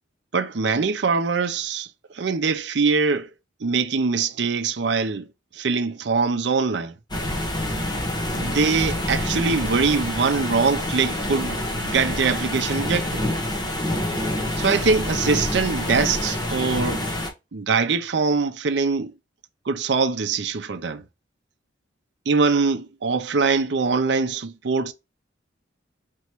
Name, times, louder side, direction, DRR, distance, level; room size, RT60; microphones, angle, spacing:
voice 1, 0.3-1.9 2.1-3.3 3.6-5.3 5.5-6.9 8.3-13.3 14.6-17.0 17.5-19.1 19.7-21.0 22.3-24.9, right 4 dB, 60° right, 0.5 m, -23 dB
sound 1, 7.1-17.3, left 1 dB, 20° left, 1.0 m, -27 dB
4.5 x 3.0 x 2.9 m
head